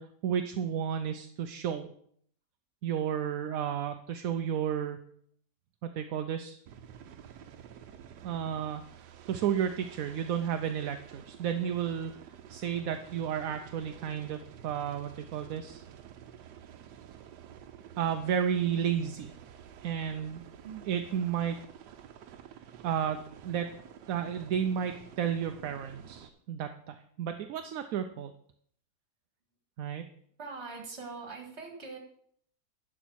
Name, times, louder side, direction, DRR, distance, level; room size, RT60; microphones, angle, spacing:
voice 1, 0.0-1.9 2.8-5.0 5.8-6.6 8.2-8.9 9.3-12.1 12.5-15.8 18.0-19.3 19.8-20.4 20.9-21.6 22.8-23.7 24.1-28.3 29.8-30.0, right 8 dB, 65° right, 7 dB, 0.9 m, -32 dB
sound 1, 6.7-26.3, right 9 dB, 85° right, 1.4 m, -50 dB
voice 2, 30.4-32.0, right 4 dB, 45° right, 3 dB, 2.1 m, -42 dB
11.0 x 5.1 x 6.3 m, 0.64 s
omnidirectional pair, 1.7 m